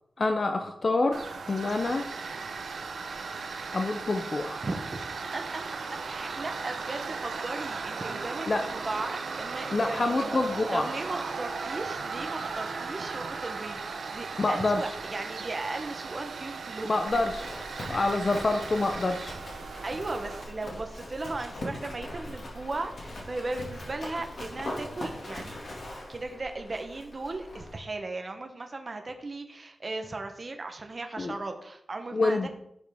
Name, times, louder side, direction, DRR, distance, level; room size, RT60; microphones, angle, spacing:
voice 1, 0.2-1.2 1.5-2.1 3.7-4.6 8.5-8.6 9.7-10.9 14.4-14.8 16.8-17.5 17.9-19.4 31.2-31.3 32.1-32.5, left 2 dB, 35° left, 5 dB, 0.6 m, -27 dB
Tools, 1.1-20.4, right 4 dB, 75° right, 0.8 m, -37 dB
voice 2, 4.6-5.0 5.3-5.6 6.0-10.0 10.7-13.8 14.1-17.0 19.7-25.5 26.1-32.5, right 2 dB, 30° right, 5 dB, 0.8 m, -36 dB
Livestock farm animals working animals, 17.0-27.8, left 1 dB, 55° left, 2.1 m, -41 dB
10.5 x 5.3 x 3.5 m, 0.75 s
wide cardioid pair, 180°, 0 cm